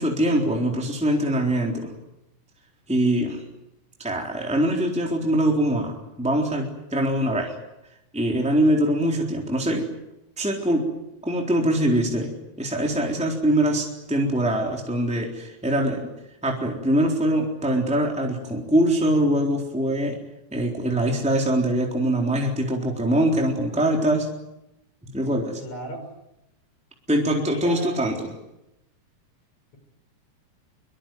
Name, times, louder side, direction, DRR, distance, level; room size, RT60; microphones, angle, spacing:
voice 1, 0.0-1.9 2.9-3.4 4.0-7.5 8.1-9.8 10.4-10.9 11.2-12.3 12.6-16.1 16.4-20.2 20.5-24.3 25.1-25.6 27.1-28.1, right 1 dB, ahead, 0 dB, 3.7 m, -23 dB
voice 2, 25.6-26.1 27.4-28.0, right 1 dB, 65° left, 7 dB, 6.5 m, -35 dB
25.0 x 23.0 x 9.3 m, 0.88 s
omnidirectional pair, 3.4 m